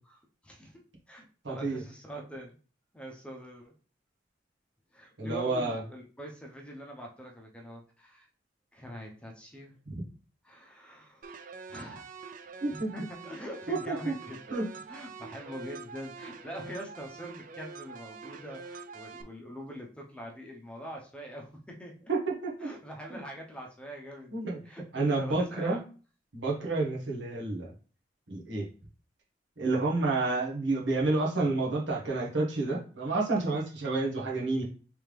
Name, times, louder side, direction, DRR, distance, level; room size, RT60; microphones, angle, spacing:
voice 1, 0.4-0.8 1.1-2.6 2.9-3.7 4.9-8.3 8.7-9.7 10.4-11.3 11.7-12.1 12.6-14.6 14.8-22.1 22.6-25.8, equal, 5° left, 0 dB, 0.7 m, -44 dB
voice 2, 1.4-1.8 5.2-5.8 9.9-10.0 12.6-12.9 13.7-14.1 14.5-14.7 22.1-22.7 23.1-23.2 24.3-24.6 24.9-25.8 26.3-27.7 28.3-28.7 29.6-34.6, right 3 dB, 85° right, -2 dB, 1.3 m, -29 dB
sound 1, 11.2-19.2, right 5 dB, 45° right, 0.4 m, -45 dB
3.5 x 3.4 x 3.2 m, 0.38 s
head